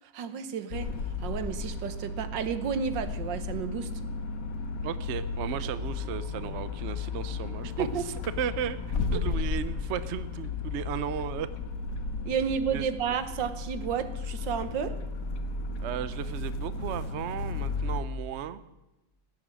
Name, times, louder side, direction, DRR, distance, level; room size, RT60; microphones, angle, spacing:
voice 1, 0.1-0.9 1.2-3.9 7.8-8.0 9.1-9.2 12.2-15.0, right 7 dB, 80° right, 11 dB, 1.7 m, -31 dB
sound 1, 0.7-18.0, left 4 dB, 55° left, 1.4 m, -34 dB
voice 2, 4.8-11.5 12.7-12.9 15.8-18.6, right 9 dB, 60° right, 14 dB, 0.7 m, -35 dB
16.0 x 9.7 x 7.7 m, 0.97 s
omnidirectional pair, 2.0 m